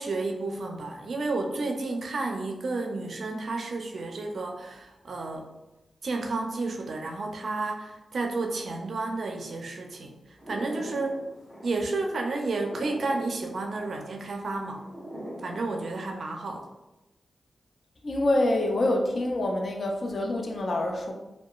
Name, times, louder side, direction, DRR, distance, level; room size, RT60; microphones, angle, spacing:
voice 1, 0.0-5.5 6.0-10.1 10.5-11.2 11.6-14.9 15.4-16.7, right 3 dB, 65° right, 3 dB, 0.4 m, -31 dB
sound 1, 10.4-15.6, equal, 10° left, 0.9 m, -42 dB
voice 2, 18.0-21.1, left 1 dB, 55° left, 2 dB, 0.4 m, -26 dB
2.8 x 2.2 x 2.3 m, 0.98 s
wide cardioid pair, 90°, 0 cm